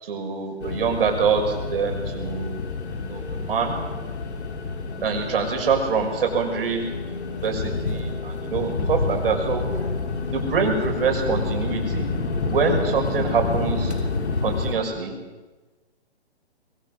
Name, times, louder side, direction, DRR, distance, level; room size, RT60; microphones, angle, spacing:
voice 1, 0.0-2.6 3.0-3.8 5.0-9.6 10.3-12.1 12.5-13.9 14.4-15.2, right 5 dB, 55° right, 2 dB, 6.0 m, -25 dB
sound 1, 0.6-14.8, left 3 dB, 80° left, 3.2 m, -28 dB
22.5 x 22.5 x 6.4 m, 1.3 s
hypercardioid pair, 150°, 33 cm